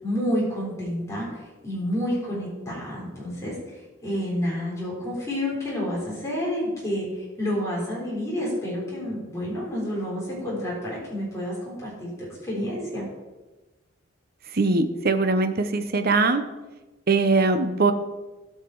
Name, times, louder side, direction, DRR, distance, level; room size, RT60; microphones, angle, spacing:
voice 1, 0.0-13.1, equal, 15° left, -6 dB, 3.8 m, -29 dB
voice 2, 14.5-16.4 17.1-17.9, right 3 dB, 45° right, 9 dB, 0.7 m, -21 dB
15.0 x 5.8 x 4.7 m, 1.1 s
head